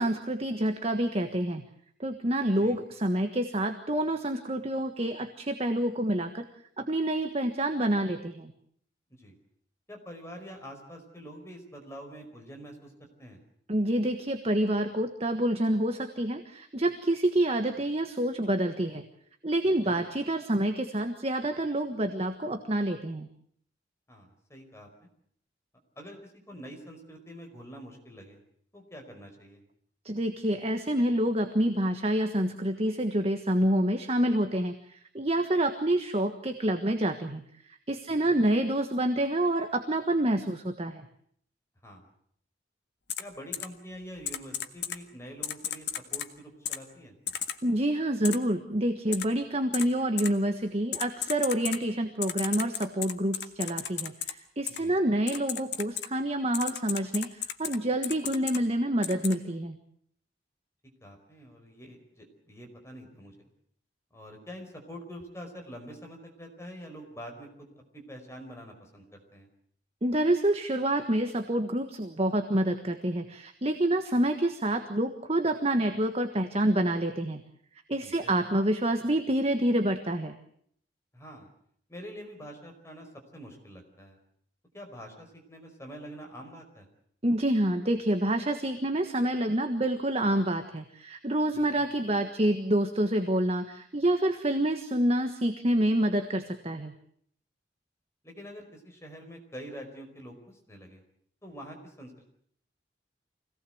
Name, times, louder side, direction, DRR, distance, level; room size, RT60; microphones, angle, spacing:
voice 1, 0.0-1.6 2.0-6.4 6.8-8.5 13.7-19.0 19.4-23.3 30.0-41.0 47.6-59.8 70.0-77.4 77.9-80.3 87.2-96.9, right 1 dB, 35° right, 7 dB, 1.5 m, -27 dB
voice 2, 9.9-13.4 19.6-20.0 24.1-25.1 26.0-28.4 28.7-29.6 38.2-38.4 41.8-42.1 43.2-47.1 54.8-55.0 61.0-63.5 64.1-69.5 78.0-78.3 81.1-81.5 81.9-84.2 84.7-86.9 91.5-91.9 98.2-101.0 101.4-102.2, equal, 15° left, 2 dB, 5.0 m, -46 dB
Typing, 43.1-43.2 43.5-43.7 44.3-45.0 45.4-46.3 46.7-46.8 47.3-47.6 48.2-48.4 49.1-49.2 49.7-49.9 50.2-50.3 50.9-51.8 52.2-54.3 54.7-54.8 55.3-56.1 56.5-57.8 58.0-58.6 59.0-59.3, left 10 dB, 70° left, 1.7 m, -33 dB
25.5 x 18.5 x 7.9 m, 0.65 s
head